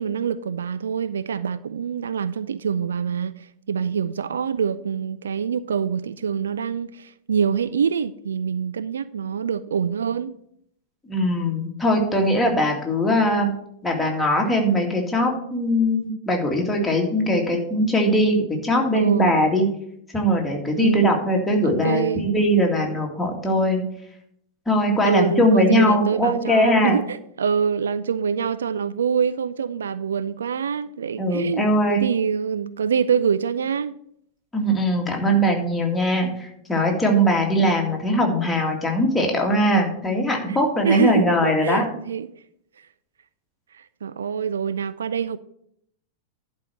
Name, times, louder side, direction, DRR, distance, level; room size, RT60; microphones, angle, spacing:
voice 1, 0.0-10.4 18.9-19.3 20.8-21.2 21.6-22.3 25.0-31.6 31.9-34.0 39.5-39.8 40.5-40.6 40.8-42.3 42.8-42.9 43.7-45.4, right 7 dB, 70° right, 0.3 m, -25 dB
voice 2, 11.1-13.5 13.8-19.7 20.1-23.8 24.7-27.0 31.2-32.1 34.5-41.8, equal, 10° left, 2.1 m, -21 dB
11.0 x 4.5 x 6.3 m
figure-of-eight pair, 90°, 0 cm